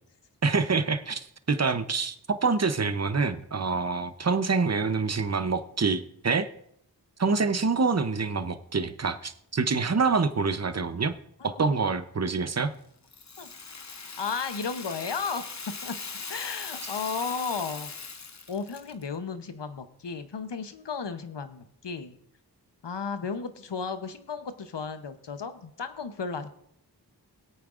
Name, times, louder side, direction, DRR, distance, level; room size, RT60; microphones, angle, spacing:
voice 1, 0.4-6.5 7.2-11.1 11.4-12.7, right 4 dB, 40° right, 11 dB, 0.7 m, -26 dB
Rattle (instrument), 13.1-19.1, left 4 dB, 40° left, 0.8 m, -40 dB
voice 2, 14.2-15.5 15.8-16.0 16.3-17.9 18.5-22.1 22.8-26.5, left 5 dB, 85° left, 10 dB, 0.8 m, -34 dB
22.0 x 8.6 x 2.5 m, 0.72 s
wide cardioid pair, 45°, 41 cm